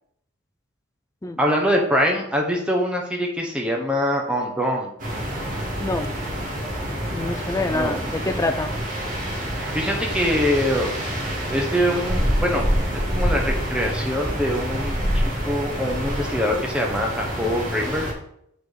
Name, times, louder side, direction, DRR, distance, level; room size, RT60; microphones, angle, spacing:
voice 1, 1.4-4.9 7.7-8.0 9.7-10.9 11.5-12.7 13.1-18.1, equal, 5° right, 0 dB, 1.1 m, -24 dB
sound 1, 5.0-18.1, equal, 40° right, 2.0 m, -26 dB
voice 2, 5.8-6.1 7.1-8.8, left 2 dB, 15° left, 9 dB, 0.4 m, -26 dB
6.7 x 4.5 x 5.0 m, 0.73 s
head